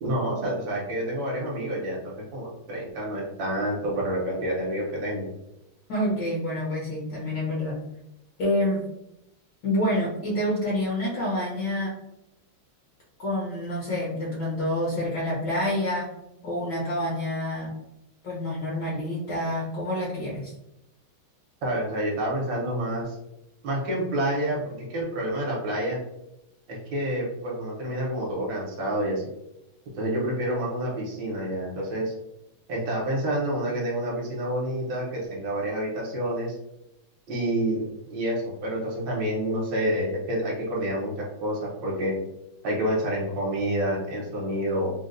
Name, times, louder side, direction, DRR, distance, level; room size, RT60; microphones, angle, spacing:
voice 1, 0.0-5.2 21.6-23.2 23.6-26.0 26.7-29.2 30.0-32.1 32.7-36.6 37.3-42.1 42.6-44.9, right 1 dB, 65° right, -3 dB, 1.5 m, -28 dB
voice 2, 5.9-7.8 8.4-8.8 9.6-11.9 13.2-16.1 16.4-17.7 18.2-20.5, left 1 dB, 65° left, -5 dB, 1.3 m, -27 dB
3.9 x 2.2 x 2.5 m, 0.87 s
omnidirectional pair, 2.3 m